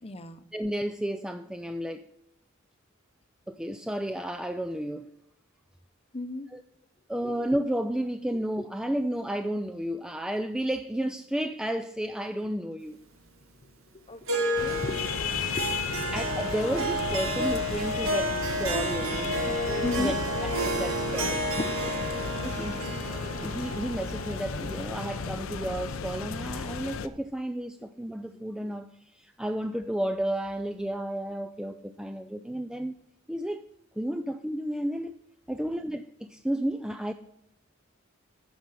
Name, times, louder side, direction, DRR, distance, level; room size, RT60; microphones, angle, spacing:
voice 1, 0.0-0.4 6.1-6.5 13.6-15.0 15.5-16.1 19.8-20.2 20.7-20.8 21.7-22.0, left 2 dB, 30° left, 0.8 m, -36 dB
voice 2, 0.5-2.0 3.5-5.1 6.5-6.6 7.1-13.0 16.1-19.6 20.0-20.2 20.4-21.4 22.4-22.8 23.1-32.9 33.3-33.6 34.0-35.1 35.5-37.1, right 1 dB, 5° right, 0.3 m, -32 dB
Harp, 14.3-24.9, right 1 dB, 85° right, 1.9 m, -31 dB
sound 1, 14.6-27.1, left 5 dB, 80° left, 0.7 m, -34 dB
9.5 x 6.1 x 6.7 m
head